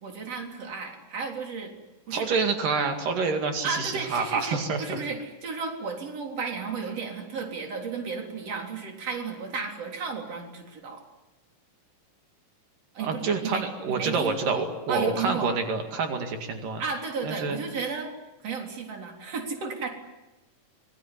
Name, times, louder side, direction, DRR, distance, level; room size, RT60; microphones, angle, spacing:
voice 1, 0.0-1.7 2.1-2.3 3.6-11.0 12.9-15.6 16.8-18.1 18.4-19.9, right 5 dB, 50° right, 2 dB, 4.6 m, -33 dB
voice 2, 2.1-5.0 13.0-16.8 17.2-17.6, right 4 dB, 85° right, 4 dB, 3.9 m, -27 dB
26.0 x 21.0 x 9.9 m, 1.0 s
omnidirectional pair, 3.7 m